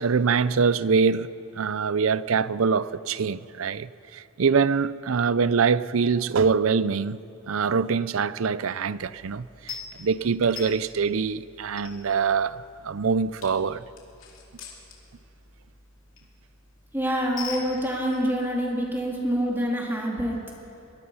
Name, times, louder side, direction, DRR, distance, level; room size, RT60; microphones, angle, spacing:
voice 1, 0.0-13.8, right 5 dB, 75° right, 0.5 m, -24 dB
sound 1, 8.9-19.7, left 6 dB, 70° left, 3.4 m, -45 dB
voice 2, 16.9-20.4, equal, 10° right, 2.9 m, -26 dB
23.5 x 22.0 x 5.6 m
head